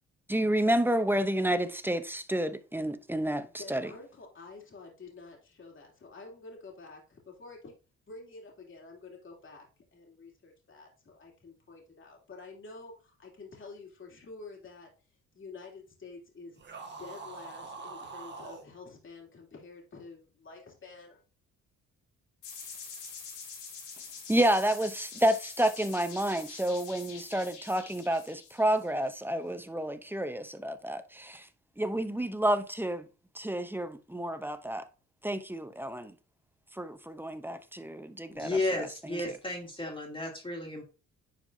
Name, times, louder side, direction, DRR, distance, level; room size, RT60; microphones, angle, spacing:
voice 1, 0.3-3.9 24.3-31.4 31.8-33.1 33.4-34.8 35.2-36.1 36.8-38.5 38.8-38.9 39.1-39.2, right 1 dB, 5° right, 0.6 m, -30 dB
voice 2, 3.4-7.8 8.1-9.7 9.9-14.9 15.3-16.6 17.0-21.2, left 3 dB, 40° left, 2.8 m, -49 dB
sound 1, 16.6-18.7, right 4 dB, 35° right, 1.6 m, -44 dB
sound 2, 22.4-29.1, left 5 dB, 85° left, 3.0 m, -45 dB
voice 3, 38.3-40.8, left 2 dB, 15° left, 2.8 m, -33 dB
9.9 x 4.6 x 2.7 m
cardioid pair, 90°, 30 cm